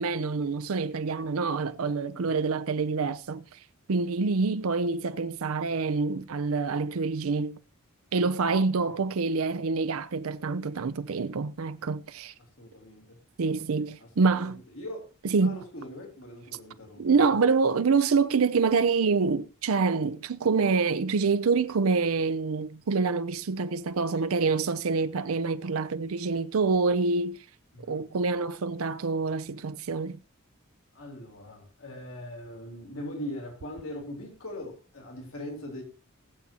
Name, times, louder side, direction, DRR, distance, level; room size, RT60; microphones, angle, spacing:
voice 1, 0.0-3.6 3.9-7.6 8.1-12.3 13.4-14.6 15.3-15.6 17.0-27.4 27.9-30.2, right 4 dB, 80° right, 0.5 m, -26 dB
voice 2, 12.4-13.2 14.0-15.1 15.4-17.4 27.7-28.0 30.9-35.8, left 1 dB, 75° left, 3.4 m, -41 dB
20.5 x 7.5 x 2.8 m
head